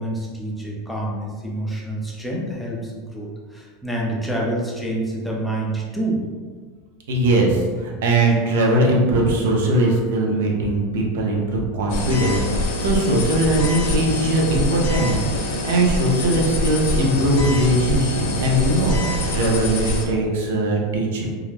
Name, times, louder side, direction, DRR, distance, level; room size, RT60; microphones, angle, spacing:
voice 1, 0.0-6.2, right 1 dB, ahead, -4 dB, 0.5 m, -27 dB
voice 2, 7.1-21.3, right 1 dB, 85° right, -1 dB, 0.6 m, -20 dB
sound 1, 11.9-20.0, left 1 dB, 65° left, 0.5 m, -24 dB
2.3 x 2.1 x 3.2 m, 1.5 s
supercardioid pair, 145°, 0 cm